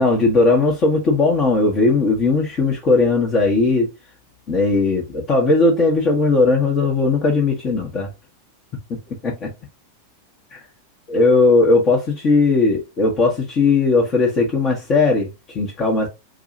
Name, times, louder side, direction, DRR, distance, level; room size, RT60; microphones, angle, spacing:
voice 1, 0.0-3.9 4.5-8.1 8.9-9.5 10.5-10.6 11.1-16.1, left 3 dB, 30° left, 1.1 m, -18 dB
4.8 x 2.3 x 2.6 m
figure-of-eight pair, 90°, 0 cm